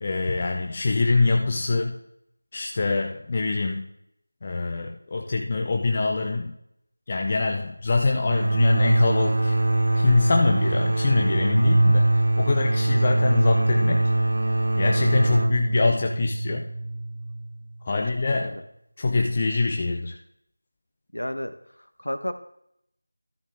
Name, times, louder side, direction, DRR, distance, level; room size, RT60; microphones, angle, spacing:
voice 1, 0.0-2.0 2.5-3.9 4.4-6.5 7.1-9.5 9.9-14.0 14.8-16.7 17.8-18.5 19.0-20.2, left 3 dB, 30° left, 2 dB, 0.6 m, -24 dB
sound 1, 8.3-17.7, right 2 dB, 55° right, 0.6 m, -22 dB
voice 2, 18.3-18.6 21.1-21.5 22.0-22.3, equal, 85° left, 10 dB, 1.1 m, -31 dB
13.0 x 6.7 x 3.6 m, 0.74 s
figure-of-eight pair, 170°, 0 cm